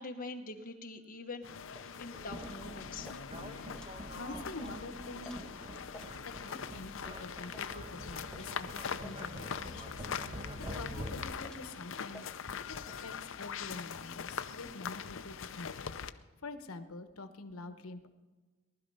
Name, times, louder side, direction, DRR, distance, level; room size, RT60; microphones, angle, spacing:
voice 1, 0.0-1.5 2.0-3.1, left 3 dB, 40° left, 3 dB, 1.2 m, -44 dB
sound 1, 1.4-16.1, left 7 dB, 65° left, 0.6 m, -42 dB
sound 2, 1.7-13.1, left 1 dB, 5° left, 1.1 m, -57 dB
sound 3, 2.1-11.3, equal, 25° right, 1.2 m, -46 dB
voice 2, 4.1-5.4 6.2-12.3 12.7-18.1, left 2 dB, 85° left, 9 dB, 1.1 m, -46 dB
19.0 x 12.0 x 5.5 m, 1.3 s
head